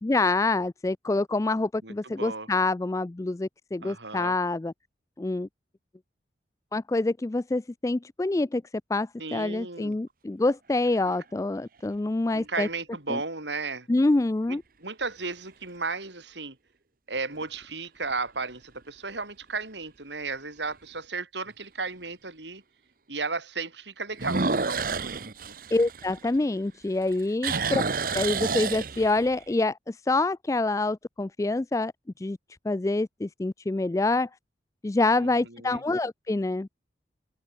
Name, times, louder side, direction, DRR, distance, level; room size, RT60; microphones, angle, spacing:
voice 1, 0.0-4.7 5.2-5.5 6.7-8.6 8.9-12.7 13.1-13.2 13.9-14.6 25.7-27.8 28.1-31.9 32.2-32.4 32.6-34.3 34.8-36.7, left 2 dB, 15° left, 0.3 m, -26 dB
voice 2, 1.8-2.5 3.8-4.3 9.2-10.0 12.3-13.9 14.5-16.6 17.1-22.6 23.1-25.5 27.5-27.8 35.2-35.3 35.6-35.8, right 4 dB, 75° right, 5.6 m, -34 dB
sound 1, 10.5-11.2 11.8-11.9 17.2-17.6 18.1-18.2 18.8-18.9 19.1-19.2 20.7-20.8 24.1-26.7 27.0-29.4, right 4 dB, 50° right, 1.1 m, -30 dB
open air
head